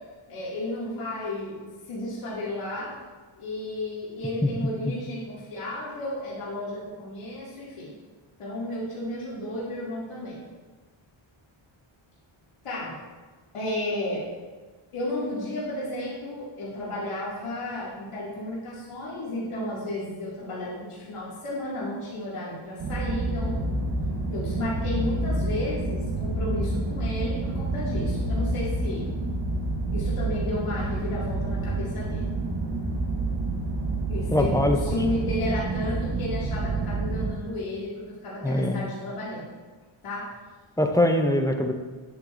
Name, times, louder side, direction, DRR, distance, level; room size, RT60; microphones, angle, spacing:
voice 1, 0.3-2.9 3.4-7.9 8.4-10.4 12.6-13.0 13.5-14.2 14.9-23.8 24.3-29.1 29.9-32.3 34.1-39.5 40.0-40.3, left 1 dB, 90° left, -8 dB, 2.3 m, -33 dB
sound 1, 22.8-37.3, right 2 dB, 50° right, 1.1 m, -28 dB
voice 2, 34.3-34.8 38.4-38.8 40.8-41.7, left 1 dB, 10° left, 4 dB, 0.4 m, -22 dB
9.8 x 7.8 x 2.5 m, 1.4 s
wide cardioid pair, 165°, 49 cm